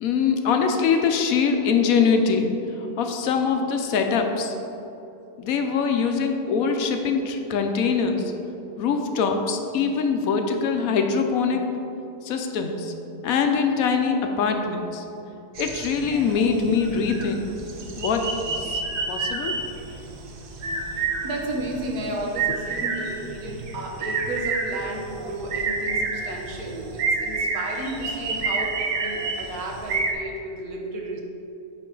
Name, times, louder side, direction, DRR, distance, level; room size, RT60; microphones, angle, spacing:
voice 1, 0.0-2.5 3.0-4.5 5.4-8.3 8.8-11.6 12.2-12.9 13.2-15.0 15.6-17.4 18.0-18.3 18.6-18.8 19.1-19.6, left 5 dB, 70° left, 4 dB, 1.0 m, -23 dB
sound 1, 15.6-30.1, right 4 dB, 60° right, 0.6 m, -30 dB
voice 2, 21.2-31.2, right 1 dB, 75° right, 0 dB, 1.4 m, -32 dB
8.2 x 4.8 x 3.8 m, 2.9 s
omnidirectional pair, 1.6 m